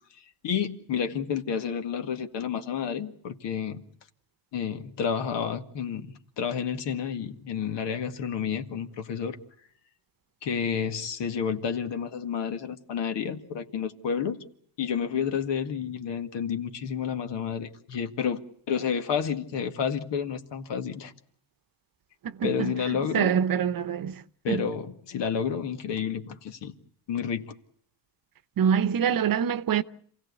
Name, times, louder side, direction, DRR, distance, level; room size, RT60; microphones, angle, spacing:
voice 1, 0.4-3.8 4.5-9.4 10.4-14.4 14.8-18.4 18.7-21.1 22.4-23.4 24.4-26.7 27.1-27.5, left 7 dB, 70° left, 2.1 m, -30 dB
voice 2, 22.4-22.7 23.1-24.2 24.5-24.6 28.6-29.8, right 8 dB, 50° right, 0.9 m, -25 dB
27.5 x 16.5 x 8.3 m
cardioid pair, 110°, 44 cm